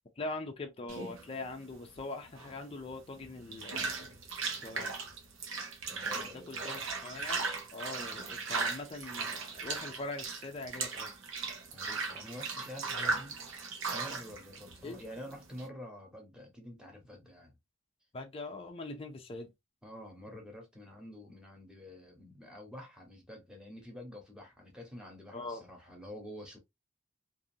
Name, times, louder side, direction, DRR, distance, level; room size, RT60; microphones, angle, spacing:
voice 1, 0.2-4.1 4.6-5.0 6.0-11.1 14.8-15.0 18.1-19.5 25.3-25.6, left 2 dB, 30° left, 0.5 m, -42 dB
sound 1, 0.9-15.7, right 4 dB, 80° right, 0.9 m, -38 dB
voice 2, 5.9-6.7 11.7-13.4 13.9-17.6 19.8-26.6, left 1 dB, 5° right, 1.0 m, -48 dB
2.6 x 2.5 x 2.7 m
head